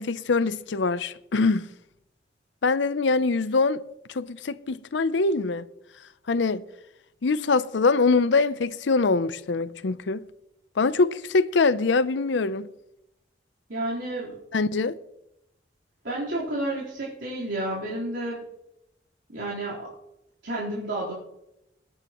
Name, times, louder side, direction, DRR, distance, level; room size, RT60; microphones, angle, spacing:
voice 1, 0.0-1.7 2.6-3.8 4.1-5.7 6.3-6.6 7.2-10.2 10.8-12.7 14.5-15.0, left 3 dB, 80° left, 0.6 m, -23 dB
voice 2, 13.7-14.4 16.0-18.4 19.3-19.9 20.4-21.1, right 1 dB, 85° right, 3.8 m, -31 dB
21.0 x 9.6 x 3.0 m
head